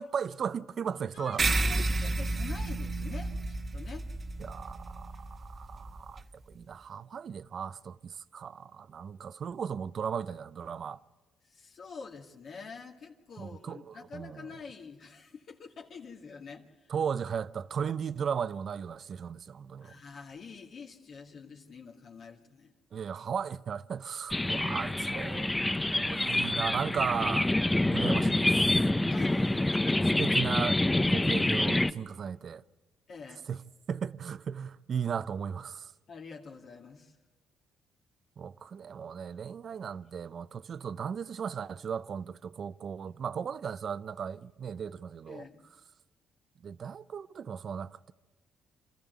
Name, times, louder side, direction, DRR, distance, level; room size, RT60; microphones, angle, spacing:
voice 1, 0.0-1.4 1.7-1.9 4.4-11.0 13.4-14.5 16.9-19.9 22.9-25.5 25.9-27.5 27.9-28.6 30.2-30.8 31.1-32.6 33.5-35.9 38.4-45.5 46.6-48.1, right 7 dB, 55° right, 0.6 m, -36 dB
voice 2, 1.1-4.1 11.4-16.9 19.8-22.7 29.1-30.0 33.1-33.4 36.1-37.2 45.3-45.6, left 5 dB, 60° left, 2.1 m, -46 dB
sound 1, 1.4-6.2, right 2 dB, 35° right, 1.2 m, -32 dB
sound 2, 24.3-31.9, left 1 dB, 10° left, 0.7 m, -27 dB
26.5 x 14.0 x 9.4 m
cardioid pair, 90°, 0 cm